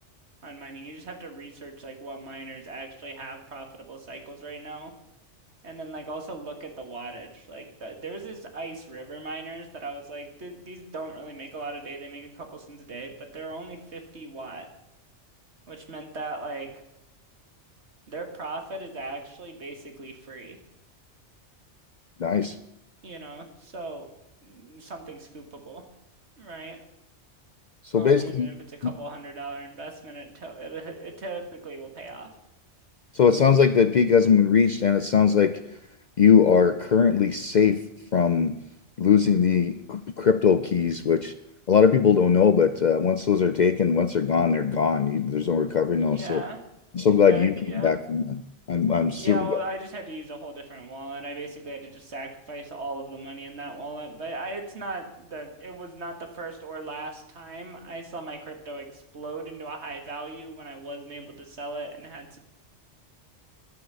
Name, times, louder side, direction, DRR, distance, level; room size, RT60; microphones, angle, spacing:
voice 1, 0.4-4.9 5.6-14.7 15.7-16.7 18.1-20.6 23.0-24.1 24.4-25.8 26.4-26.8 27.9-32.3 46.1-46.6 47.1-47.9 49.1-62.4, right 2 dB, 65° right, 4 dB, 2.1 m, -38 dB
voice 2, 22.2-22.6 27.8-28.5 33.1-35.6 36.2-37.8 38.1-38.6 39.0-41.3 41.7-46.4 46.9-48.4 48.7-49.6, left 6 dB, 55° left, 11 dB, 0.5 m, -20 dB
11.5 x 9.6 x 6.9 m, 0.83 s
omnidirectional pair, 1.2 m